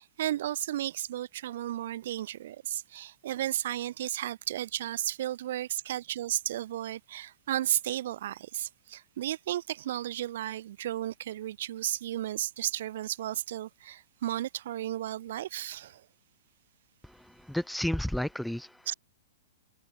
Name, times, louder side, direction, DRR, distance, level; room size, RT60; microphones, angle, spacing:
voice 1, 0.0-16.0 18.9-19.0, right 12 dB, 60° right, 1.0 m, -34 dB
voice 2, 17.1-18.7, left 1 dB, ahead, 0.4 m, -32 dB
hypercardioid pair, 150°, 0 cm